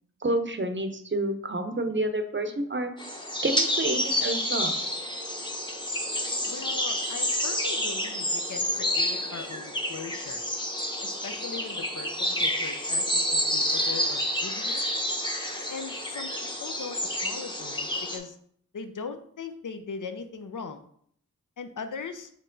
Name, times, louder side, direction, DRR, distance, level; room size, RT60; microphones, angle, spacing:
voice 1, 0.2-2.9 3.4-5.0, right 1 dB, 35° right, 7 dB, 0.6 m, -29 dB
sound 1, 3.0-18.2, equal, 15° left, 0.8 m, -29 dB
voice 2, 6.5-10.4 11.0-14.8 15.7-18.4 18.7-20.9 21.6-22.3, left 5 dB, 70° left, 8 dB, 0.5 m, -40 dB
4.3 x 3.1 x 3.8 m, 0.64 s
wide cardioid pair, 45°, 32 cm